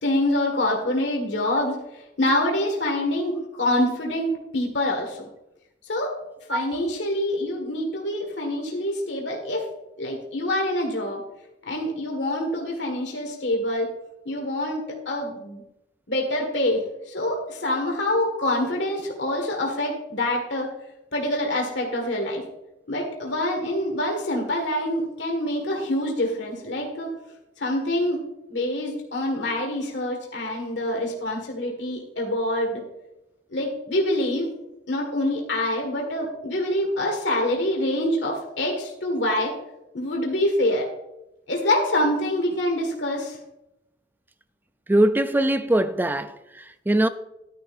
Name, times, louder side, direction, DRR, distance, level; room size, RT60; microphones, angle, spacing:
voice 1, 0.0-5.3 5.9-6.2 6.5-9.7 10.0-11.2 11.6-13.9 14.2-15.6 16.1-20.7 21.1-22.4 22.9-27.1 27.6-28.2 28.5-32.8 33.5-34.5 34.9-39.5 39.9-40.9 41.5-43.4, left 1 dB, 80° left, 1.8 m, -26 dB
voice 2, 44.9-46.3 46.9-47.1, right 1 dB, 10° right, 0.4 m, -21 dB
11.5 x 10.0 x 2.6 m
head